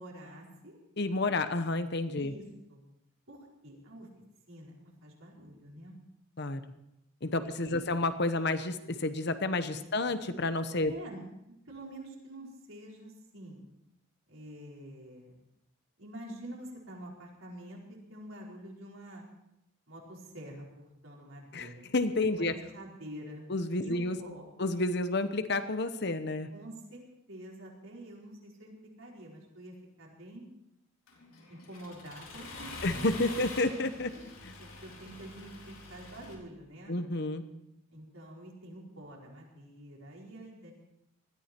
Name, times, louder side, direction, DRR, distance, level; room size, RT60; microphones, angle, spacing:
voice 1, 0.0-0.8 2.2-2.8 3.3-4.1 4.5-5.9 7.7-8.0 9.8-9.9 10.8-11.2 11.7-13.6 14.3-15.4 16.0-19.2 19.9-20.6 21.0-21.9 22.3-23.4 23.8-24.5 26.5-27.0 27.3-30.5 31.5-33.0 34.0-36.9 37.9-40.7, right 1 dB, 75° right, -2 dB, 4.6 m, -47 dB
voice 2, 1.0-2.3 6.4-6.6 7.2-10.9 21.5-22.5 23.5-24.2 24.6-26.5 32.8-34.2 34.4-34.5 36.9-37.5, left 2 dB, 55° left, 10 dB, 1.0 m, -30 dB
Accelerating revving vroom, 31.1-36.3, left 3 dB, 85° left, 4.1 m, -45 dB
20.0 x 14.0 x 4.5 m, 0.84 s
head